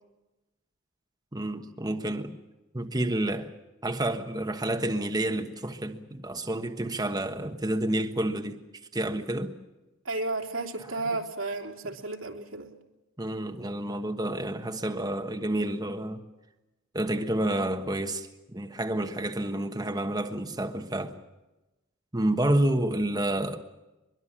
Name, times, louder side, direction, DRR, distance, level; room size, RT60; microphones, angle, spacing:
voice 1, 1.3-2.4 2.7-3.5 3.8-8.6 8.9-9.5 13.2-16.2 16.9-21.2 22.1-23.6, right 1 dB, 20° right, 1.3 m, -29 dB
voice 2, 10.0-12.7, right 2 dB, 85° right, 3.2 m, -33 dB
23.0 x 22.5 x 7.4 m
head